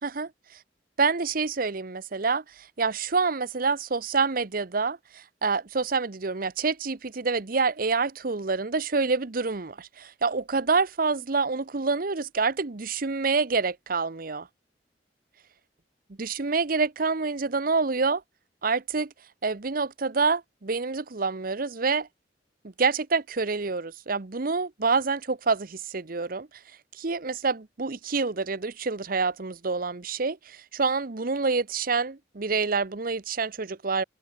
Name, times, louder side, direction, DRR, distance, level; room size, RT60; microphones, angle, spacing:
voice 1, 1.0-14.5 16.2-18.2 18.6-19.1 19.4-22.1 22.8-26.5 27.0-34.0, right 4 dB, 55° right, 0.9 m, -27 dB
open air
head